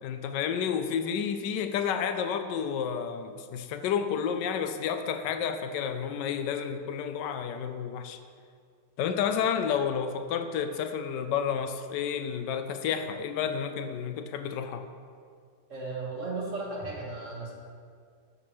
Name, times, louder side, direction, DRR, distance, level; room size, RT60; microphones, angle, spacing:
voice 1, 0.0-8.2 9.0-14.9, left 7 dB, 85° left, 8 dB, 1.2 m, -30 dB
voice 2, 15.7-17.5, right 3 dB, 45° right, -3 dB, 1.9 m, -35 dB
13.5 x 6.5 x 3.1 m, 2.1 s
omnidirectional pair, 1.8 m